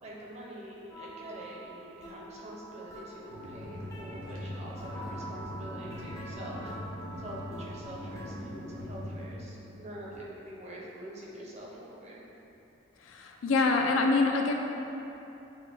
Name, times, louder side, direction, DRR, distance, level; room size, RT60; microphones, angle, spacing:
voice 1, 0.0-6.7 7.2-12.2, right 1 dB, 35° right, -4 dB, 0.6 m, -45 dB
sound 1, 0.9-8.3, right 1 dB, 15° left, 0.4 m, -46 dB
sound 2, 3.3-10.2, left 1 dB, 80° right, 0.9 m, -41 dB
voice 2, 13.0-14.5, left 3 dB, 85° left, 2 dB, 0.4 m, -25 dB
6.1 x 2.2 x 3.3 m, 2.9 s
head